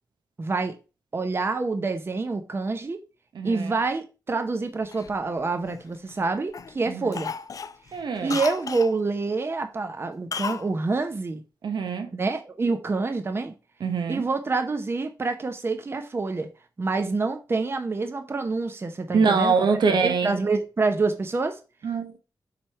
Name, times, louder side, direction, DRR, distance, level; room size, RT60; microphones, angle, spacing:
voice 1, 0.4-0.7 1.1-3.0 3.4-7.3 8.2-11.4 12.1-13.5 14.1-16.5 16.8-19.5 20.0-21.6, right 3 dB, 30° right, 0.7 m, -27 dB
voice 2, 3.3-3.8 6.8-7.2 7.9-8.4 11.6-12.1 13.8-14.2 19.1-20.4 21.8-22.1, right 5 dB, 80° right, 1.2 m, -24 dB
Cough, 4.9-6.2 6.5-6.8 7.1-8.9 10.3-10.7 10.9-11.0, left 6 dB, 50° left, 0.4 m, -34 dB
7.2 x 3.3 x 4.7 m
wide cardioid pair, 115°, 7 cm